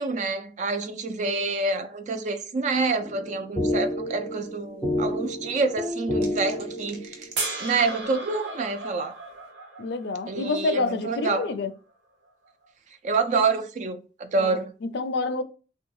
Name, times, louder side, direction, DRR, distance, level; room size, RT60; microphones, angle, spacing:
voice 1, 0.0-7.3 7.6-9.2 10.3-11.5 13.0-14.7, right 3 dB, 45° right, 0.4 m, -27 dB
sound 1, 3.0-7.3, left 1 dB, 20° left, 0.5 m, -30 dB
sound 2, 4.4-4.5 4.7-4.8 5.2-8.5 9.0-9.3, right 3 dB, 65° right, 0.8 m, -46 dB
sound 3, 7.4-10.6 12.6-12.7, right 3 dB, 85° right, 1.1 m, -35 dB
voice 2, 9.8-11.7 14.4-15.4, left 3 dB, 65° left, 0.4 m, -28 dB
3.6 x 2.2 x 3.0 m
head